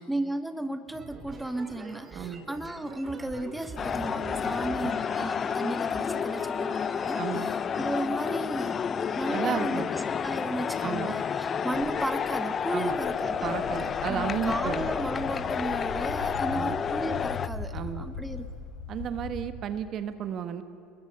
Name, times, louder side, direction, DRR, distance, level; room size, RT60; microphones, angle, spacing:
voice 1, 0.0-13.5 14.1-18.5, right 1 dB, 5° right, 9 dB, 1.2 m, -34 dB
sound 1, 0.9-7.5, right 3 dB, 25° right, 4.4 m, -45 dB
sound 2, 3.8-17.5, left 7 dB, 35° left, 0.7 m, -30 dB
voice 2, 7.2-7.5 9.3-9.9 10.8-11.1 12.7-13.0 13.4-14.8 16.5-16.7 17.7-18.0 18.9-20.6, right 8 dB, 45° right, 10 dB, 1.2 m, -33 dB
Walk footsteps, 11.7-19.4, left 4 dB, 70° left, 4.1 m, -40 dB
29.5 x 21.0 x 5.5 m, 2.5 s
hypercardioid pair, 75°, 0 cm